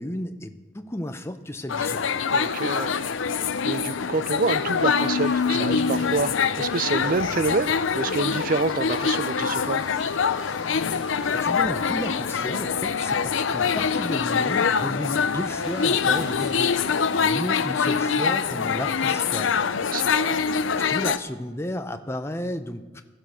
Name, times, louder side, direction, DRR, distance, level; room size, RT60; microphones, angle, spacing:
voice 1, 0.0-2.1 11.3-19.6 20.8-23.0, left 1 dB, 15° left, 8 dB, 0.7 m, -33 dB
Dumping Soup Into Toilet, 1.6-20.1, equal, 5° right, 3.4 m, -50 dB
sound 1, 1.7-21.2, left 6 dB, 90° left, 0.6 m, -24 dB
voice 2, 2.3-3.0 3.6-6.3 6.6-9.8 19.9-20.4, right 3 dB, 45° right, 16 dB, 0.5 m, -27 dB
sound 2, 5.7-17.0, right 1 dB, 65° right, 1.6 m, -45 dB
15.5 x 11.0 x 6.3 m, 1.3 s
head